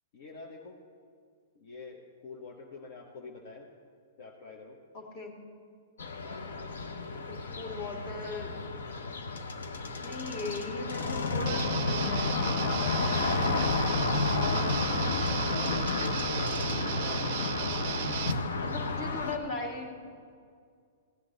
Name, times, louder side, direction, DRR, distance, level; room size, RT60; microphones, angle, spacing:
voice 1, 0.1-0.8 1.5-3.7 4.2-4.8 15.3-18.3, left 4 dB, 65° left, 0 dB, 1.2 m, -46 dB
voice 2, 4.9-5.3 7.3-8.6 10.0-14.8 18.6-19.9, left 3 dB, 45° left, 2 dB, 2.2 m, -39 dB
sound 1, 6.0-19.4, left 3 dB, 85° left, 0.9 m, -31 dB
Guitar, 11.5-18.3, right 13 dB, 55° right, 0.4 m, -36 dB
16.0 x 9.6 x 4.0 m, 2.1 s
hypercardioid pair, 130°, 0 cm